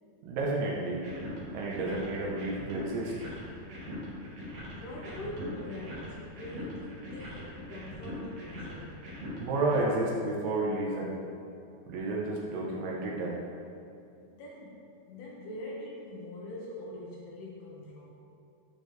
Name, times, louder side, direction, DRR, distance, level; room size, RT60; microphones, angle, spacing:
voice 1, 0.2-1.1 1.5-3.1 9.4-11.1 11.9-13.4, right 2 dB, 80° right, -3 dB, 2.8 m, -31 dB
sound 1, 0.9-9.8, left 1 dB, 60° right, 1.7 m, -42 dB
voice 2, 4.7-9.0 14.2-18.1, left 1 dB, 80° left, -4 dB, 2.9 m, -43 dB
10.5 x 4.5 x 3.2 m, 2.7 s
omnidirectional pair, 4.8 m